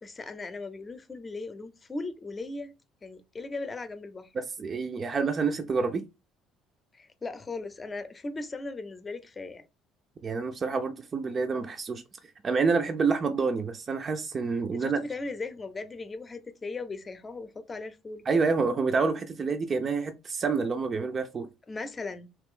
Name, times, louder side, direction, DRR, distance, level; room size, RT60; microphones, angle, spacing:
voice 1, 0.0-2.7 3.0-4.3 6.9-9.6 14.7-18.2 21.7-22.3, left 3 dB, 30° left, 0.7 m, -38 dB
voice 2, 4.3-6.0 10.2-12.0 12.4-15.0 18.3-21.5, right 4 dB, 40° right, 0.5 m, -28 dB
2.9 x 2.4 x 3.7 m
hypercardioid pair, 60°, 0 cm